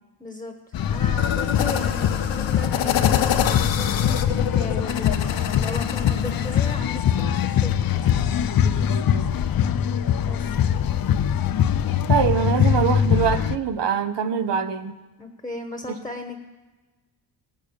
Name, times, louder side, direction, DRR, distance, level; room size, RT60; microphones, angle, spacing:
voice 1, 0.2-0.5 0.9-8.3 10.2-10.6 15.2-16.4, left 2 dB, 10° left, 5 dB, 1.3 m, -36 dB
sound 1, 0.7-13.6, left 9 dB, 50° left, 0.7 m, -22 dB
sound 2, 1.2-6.8, left 9 dB, 75° left, 1.1 m, -27 dB
voice 2, 8.7-9.3 12.1-15.0, right 7 dB, 60° right, 9 dB, 1.2 m, -24 dB
18.0 x 6.6 x 8.7 m, 1.2 s
cardioid pair, 85°, 46 cm